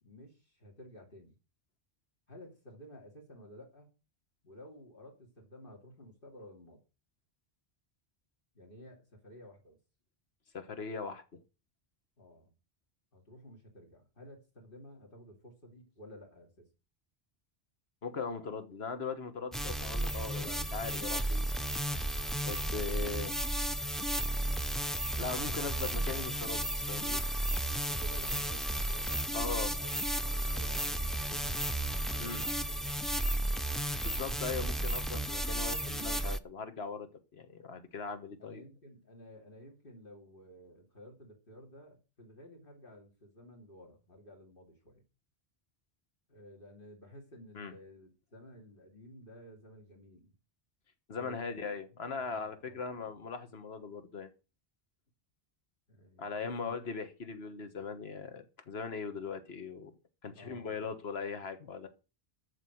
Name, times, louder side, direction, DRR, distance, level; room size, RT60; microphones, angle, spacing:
voice 1, 0.0-1.4 2.3-3.9 4.4-6.8 8.5-9.8 12.2-12.5 13.1-16.7 27.8-29.9 30.2-31.6 32.1-32.8 38.4-45.0 46.3-50.3 51.1-51.7 52.2-53.1 55.9-56.8 60.3-61.1, equal, 60° left, 4 dB, 2.8 m, -53 dB
voice 2, 10.5-11.4 18.0-21.5 22.1-23.4 25.2-27.2 29.3-29.7 32.2-32.4 34.0-38.6 47.5-47.7 51.1-54.3 56.2-59.9 60.2-61.9, left 5 dB, 75° left, 9 dB, 1.7 m, -40 dB
sound 1, 19.5-36.4, right 1 dB, ahead, 0.5 m, -33 dB
13.5 x 5.2 x 7.8 m, 0.32 s
omnidirectional pair, 1.1 m